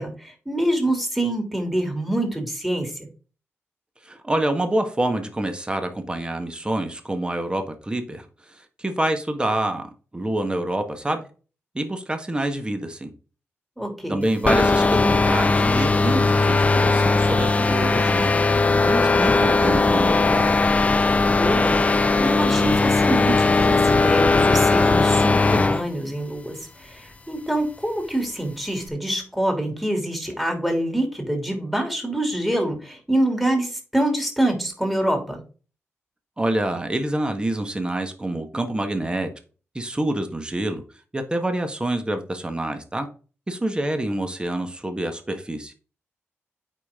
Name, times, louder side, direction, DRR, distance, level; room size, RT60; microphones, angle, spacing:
voice 1, 0.0-3.1 13.8-14.2 21.3-21.8 22.2-35.4, right 1 dB, ahead, 2.9 m, -25 dB
voice 2, 4.0-8.3 8.8-11.3 11.7-13.1 14.1-18.3 18.9-20.6 36.4-39.3 39.7-40.8 41.1-43.1 43.5-45.7, right 1 dB, 20° right, 1.5 m, -26 dB
sound 1, 14.5-25.8, left 3 dB, 30° left, 0.6 m, -18 dB
8.3 x 5.2 x 3.7 m
cardioid pair, 75°, 5 cm